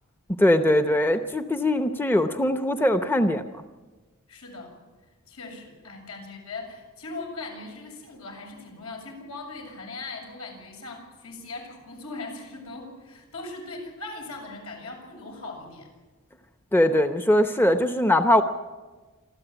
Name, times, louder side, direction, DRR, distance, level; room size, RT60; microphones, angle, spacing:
voice 1, 0.4-3.4 16.7-18.4, left 1 dB, 10° left, 8 dB, 0.8 m, -21 dB
voice 2, 4.3-4.8 5.3-15.9, left 3 dB, 85° left, 2 dB, 7.1 m, -39 dB
27.5 x 13.0 x 9.2 m, 1.3 s
head